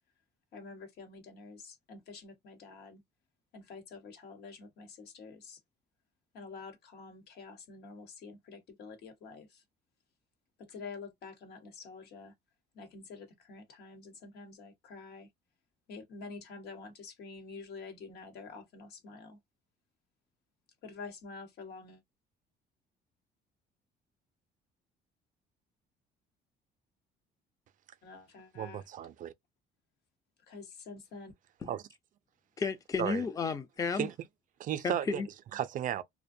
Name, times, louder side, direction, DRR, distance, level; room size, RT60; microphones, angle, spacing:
voice 1, 0.5-3.0 3.5-5.6 6.3-9.6 10.6-12.3 12.7-15.3 15.9-19.4 20.8-22.0 28.0-28.9 30.5-31.3, left 4 dB, 70° left, 1.1 m, -48 dB
voice 2, 28.5-29.3 31.7-31.8 33.0-33.2 34.0-34.1 34.6-35.2 35.5-36.0, right 10 dB, 50° right, 0.4 m, -34 dB
voice 3, 32.6-34.1 34.8-35.3, left 5 dB, 20° left, 0.4 m, -32 dB
2.5 x 2.1 x 2.5 m
cardioid pair, 110°, 17 cm